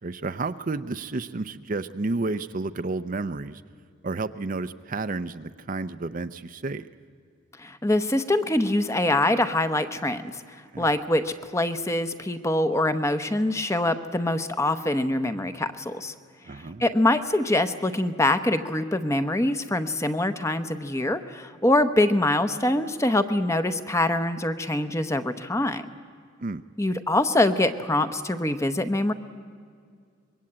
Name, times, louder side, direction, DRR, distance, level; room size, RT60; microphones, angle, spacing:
voice 1, 0.0-3.6 4.0-6.9 10.7-10.9 16.4-16.9 26.4-26.6, right 3 dB, 40° right, 10 dB, 0.5 m, -31 dB
voice 2, 7.6-10.3 10.8-16.1 16.8-25.8 26.8-29.1, left 1 dB, 15° left, 10 dB, 0.8 m, -24 dB
25.5 x 22.0 x 8.7 m, 2.1 s
head